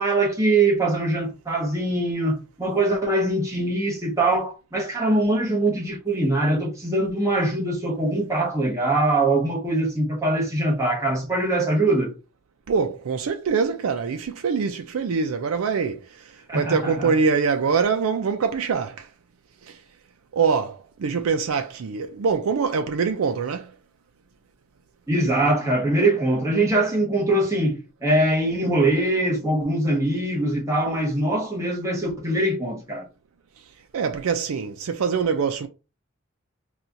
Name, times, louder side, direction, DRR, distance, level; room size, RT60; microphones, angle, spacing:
voice 1, 0.0-12.1 16.5-17.1 25.1-33.0, right 2 dB, 15° right, 1.1 m, -22 dB
voice 2, 12.7-19.1 19.6-19.8 20.3-23.7 33.9-35.7, right 5 dB, 80° right, 0.4 m, -24 dB
4.2 x 2.3 x 2.6 m
head